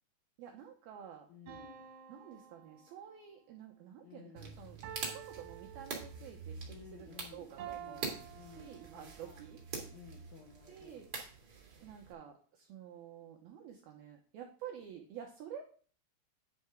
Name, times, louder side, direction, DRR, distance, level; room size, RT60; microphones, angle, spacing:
voice 1, 0.4-1.3 2.1-4.8 5.1-9.6 10.7-11.1 11.8-15.6, right 9 dB, 90° right, 2 dB, 2.1 m, -50 dB
voice 2, 1.3-1.9 4.0-4.6 6.7-7.5 7.8-9.4 9.9-11.0, left 7 dB, 75° left, 1 dB, 2.1 m, -56 dB
sound 1, 1.5-3.3 4.8-6.5 7.6-9.3, right 10 dB, 70° right, 2.9 m, -50 dB
sound 2, 4.4-12.1, right 4 dB, 45° right, 1.9 m, -45 dB
10.0 x 7.7 x 3.5 m, 0.42 s
omnidirectional pair, 5.7 m